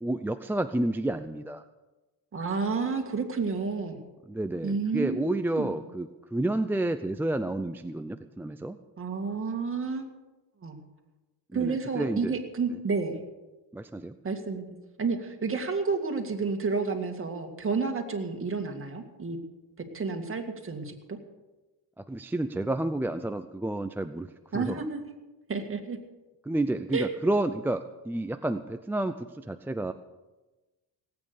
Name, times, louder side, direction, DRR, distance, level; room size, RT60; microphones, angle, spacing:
voice 1, 0.0-1.6 4.3-8.8 11.5-12.3 13.7-14.2 22.0-24.3 24.5-24.8 26.4-29.9, right 1 dB, 5° right, 8 dB, 0.4 m, -30 dB
voice 2, 2.3-4.0 4.6-5.8 9.0-10.2 10.6-10.8 11.5-13.2 14.2-14.6 15.0-19.4 19.9-21.2 24.5-25.0 25.5-26.0 26.9-27.1, right 4 dB, 30° right, 4 dB, 2.1 m, -30 dB
18.5 x 8.8 x 6.8 m, 1.1 s
cardioid pair, 110°, 43 cm